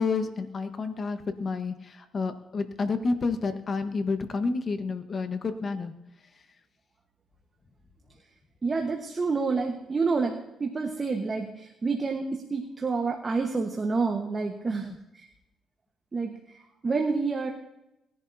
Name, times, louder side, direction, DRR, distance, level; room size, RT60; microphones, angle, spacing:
voice 1, 0.0-5.9 14.8-15.0, left 4 dB, 45° left, 8 dB, 1.3 m, -30 dB
voice 2, 8.6-14.9 15.1-15.3 16.1-16.3 16.8-17.5, right 4 dB, 30° right, 2 dB, 1.4 m, -28 dB
20.0 x 11.0 x 2.8 m, 0.91 s
cardioid pair, 90°, 0 cm